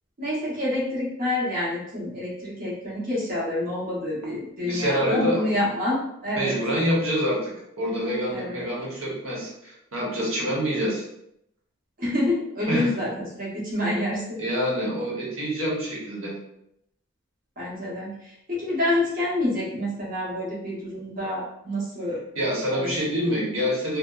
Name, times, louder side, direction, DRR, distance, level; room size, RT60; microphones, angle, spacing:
voice 1, 0.2-6.5 8.3-8.6 12.0-14.4 17.6-22.2 22.7-23.0, left 1 dB, 40° right, -6 dB, 0.9 m, -28 dB
voice 2, 4.6-5.5 6.4-11.0 12.7-12.9 14.4-16.3 22.4-24.0, equal, 75° right, -4 dB, 0.9 m, -26 dB
2.8 x 2.0 x 2.3 m, 0.78 s
head